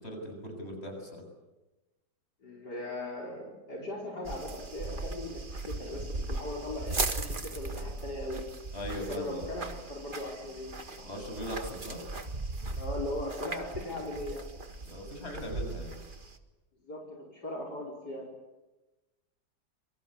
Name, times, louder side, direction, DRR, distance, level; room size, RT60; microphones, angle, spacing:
voice 1, 0.0-1.2 8.7-9.5 11.0-12.0 14.8-16.0, equal, 35° left, 3 dB, 7.5 m, -39 dB
voice 2, 2.4-8.4 9.1-11.1 12.8-14.4 16.8-18.3, left 1 dB, 70° left, -1 dB, 5.3 m, -39 dB
sound 1, 4.2-16.4, right 3 dB, 30° right, 1.8 m, -38 dB
27.0 x 24.5 x 8.4 m, 1.1 s
omnidirectional pair, 1.9 m